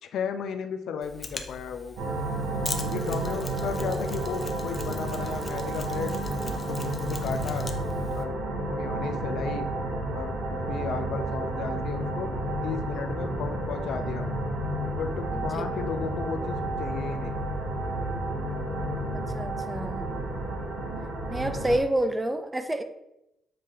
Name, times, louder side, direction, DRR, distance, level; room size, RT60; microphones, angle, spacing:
voice 1, 0.0-2.0 2.8-6.2 6.7-7.7 8.1-8.4 8.7-9.7 10.1-12.3 12.6-14.3 14.9-17.3, left 6 dB, 75° left, 7 dB, 0.6 m, -34 dB
Mechanisms, 1.0-8.2, left 3 dB, 25° left, 0.7 m, -41 dB
sound 1, 2.0-21.8, right 1 dB, 90° right, 1.7 m, -31 dB
voice 2, 11.0-11.3 15.3-15.6 19.1-20.1 21.3-22.8, right 1 dB, 15° right, 8 dB, 0.6 m, -29 dB
7.6 x 2.9 x 4.9 m, 0.86 s
cardioid pair, 90°, 0 cm